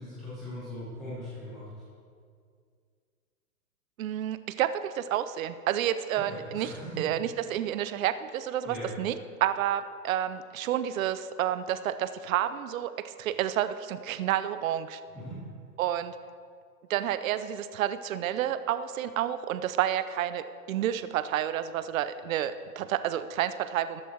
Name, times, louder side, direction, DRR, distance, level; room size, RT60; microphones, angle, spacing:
voice 1, 0.0-1.7 6.3-7.0 8.6-8.9 15.1-15.4, equal, ahead, -13 dB, 0.4 m, -40 dB
voice 2, 4.0-15.0 15.8-16.1 16.9-24.0, right 11 dB, 55° right, 13 dB, 0.7 m, -30 dB
14.0 x 10.0 x 4.5 m, 2.2 s
hypercardioid pair, 145°, 49 cm